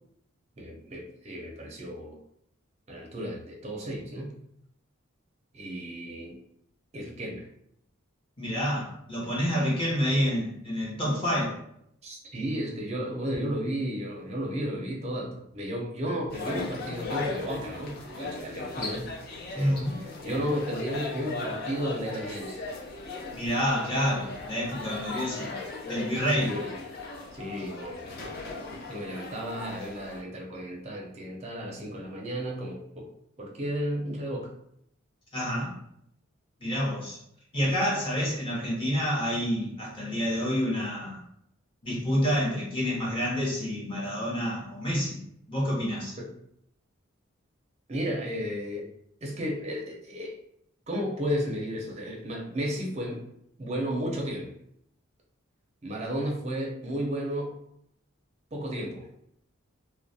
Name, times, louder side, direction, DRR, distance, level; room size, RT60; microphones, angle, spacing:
voice 1, 0.6-2.2 2.9-4.3 5.5-6.4 6.9-7.5 12.0-19.1 19.6-22.6 26.3-26.7 27.3-28.6 28.9-33.1 33.4-34.5 46.2-46.3 47.9-48.9 49.2-50.3 50.9-53.2 53.6-54.5 55.8-57.5 58.5-59.1, equal, 30° right, -1 dB, 0.5 m, -33 dB
voice 2, 8.4-11.5 19.5-20.0 23.3-25.5 25.8-26.6 35.3-35.7 36.6-37.2 37.5-41.2 41.8-45.2 45.5-46.2, equal, 25° left, -5 dB, 0.8 m, -28 dB
sound 1, 16.3-30.2, left 3 dB, 45° left, 0.4 m, -37 dB
2.3 x 2.1 x 2.6 m, 0.74 s
head